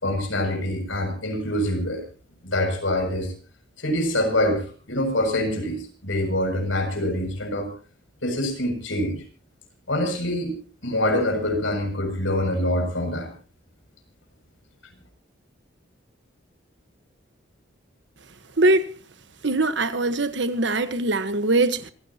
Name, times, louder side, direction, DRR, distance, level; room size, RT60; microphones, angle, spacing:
voice 1, 0.0-2.0 2.4-3.3 3.8-7.7 8.2-9.2 9.9-10.6 10.8-13.3, left 1 dB, 85° left, 7.2 m, -25 dB
voice 2, 18.6-18.9 19.4-21.9, right 2 dB, 65° right, 1.3 m, -22 dB
26.5 x 16.5 x 2.9 m
head